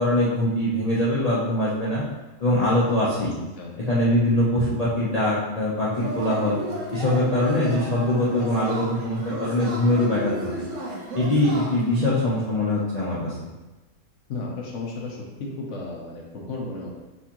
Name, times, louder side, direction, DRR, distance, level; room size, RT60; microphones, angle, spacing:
voice 1, 0.0-2.0 2.4-3.4 3.9-6.6 6.9-10.5 11.1-13.4, left 1 dB, 40° left, -9 dB, 0.6 m, -22 dB
Yell / Cheering, 5.9-12.1, right 1 dB, 65° right, 1.1 m, -34 dB
voice 2, 14.3-16.9, left 3 dB, 60° left, -1 dB, 1.1 m, -34 dB
4.4 x 3.5 x 2.9 m, 1.1 s
omnidirectional pair, 1.5 m